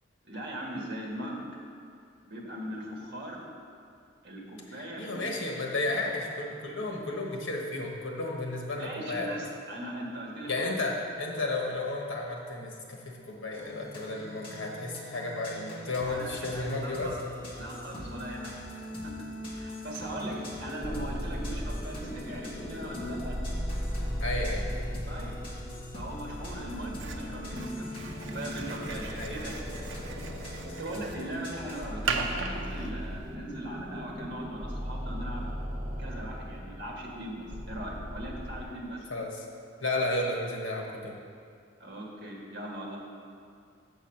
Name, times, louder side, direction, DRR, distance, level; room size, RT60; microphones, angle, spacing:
voice 1, 0.2-1.5 2.2-3.4 4.2-5.2 8.8-10.6 16.1-17.2 17.6-19.2 19.6-23.4 25.1-25.4 25.9-28.1 28.3-29.6 30.6-35.5 36.0-39.1 41.8-43.0, right 1 dB, 55° right, -1 dB, 1.5 m, -39 dB
voice 2, 4.7-9.3 10.5-17.1 24.2-24.7 29.1-29.4 39.1-39.4 39.8-41.2, left 2 dB, 75° left, 0 dB, 1.3 m, -33 dB
sound 1, 13.5-31.9, left 1 dB, 25° left, 1.4 m, -42 dB
sound 2, 20.8-38.6, equal, 20° right, 1.0 m, -37 dB
sound 3, 27.0-33.4, right 5 dB, 80° right, 0.7 m, -38 dB
7.2 x 7.1 x 5.9 m, 2.3 s
head